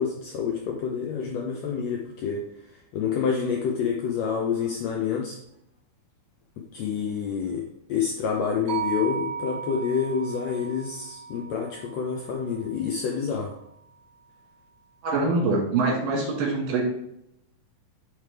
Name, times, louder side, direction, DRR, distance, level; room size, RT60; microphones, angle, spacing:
voice 1, 0.0-2.4 2.9-5.4 6.7-7.6 7.9-13.5, left 6 dB, 85° left, 0 dB, 1.6 m, -28 dB
sound 1, 8.7-12.9, right 7 dB, 70° right, 3.0 m, -35 dB
voice 2, 15.0-16.8, right 3 dB, 85° right, -2 dB, 3.4 m, -24 dB
9.1 x 3.3 x 3.3 m, 0.78 s
omnidirectional pair, 3.8 m